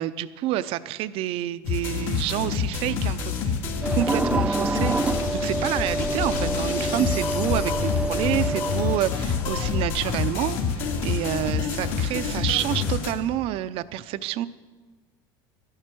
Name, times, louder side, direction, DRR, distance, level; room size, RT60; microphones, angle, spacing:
voice 1, 0.0-3.5 3.9-5.0 5.3-14.5, right 13 dB, 55° right, 14 dB, 0.6 m, -28 dB
sound 1, 1.6-13.1, left 5 dB, 70° left, 2.2 m, -28 dB
sound 2, 3.8-9.0, right 2 dB, 10° right, 0.4 m, -27 dB
sound 3, 4.8-10.1, left 6 dB, 45° left, 2.2 m, -34 dB
12.5 x 11.0 x 6.1 m, 1.4 s
supercardioid pair, 120°, 11 cm